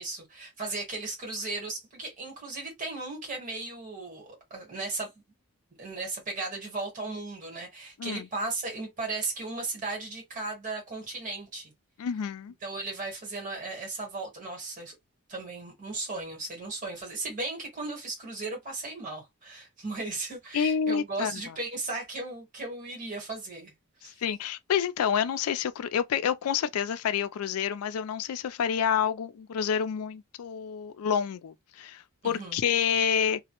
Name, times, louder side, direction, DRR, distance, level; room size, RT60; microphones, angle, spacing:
voice 1, 0.0-5.1 5.8-11.7 12.6-14.9 15.3-23.7 24.0-24.2 32.2-32.6, right 3 dB, 35° right, 1.1 m, -36 dB
voice 2, 12.0-12.5 20.5-21.4 24.2-33.4, left 8 dB, 80° left, 0.3 m, -28 dB
2.1 x 2.0 x 2.9 m
head